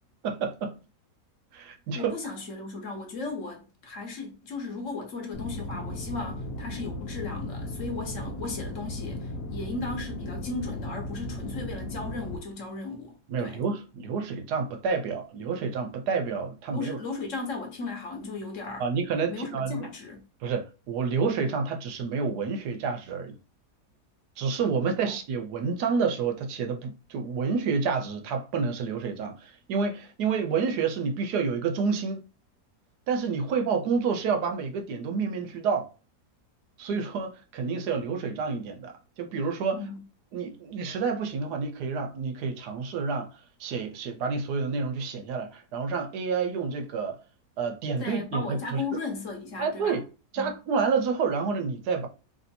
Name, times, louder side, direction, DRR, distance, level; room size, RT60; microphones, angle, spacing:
voice 1, 0.2-0.8 1.5-2.1 13.3-17.0 18.8-19.9 20.4-23.4 24.4-32.2 33.1-35.9 36.8-39.8 40.3-43.3 43.6-47.2 47.6-48.8 49.6-50.0 50.3-52.1, right 5 dB, 85° right, 1.2 m, -29 dB
voice 2, 1.9-13.6 16.7-18.9 19.3-20.2 25.0-25.1 39.7-40.0 48.0-50.0 50.4-50.5, left 3 dB, 55° left, 1.2 m, -36 dB
sound 1, 5.3-12.4, left 1 dB, 80° left, 1.2 m, -36 dB
3.2 x 2.6 x 4.2 m
omnidirectional pair, 1.7 m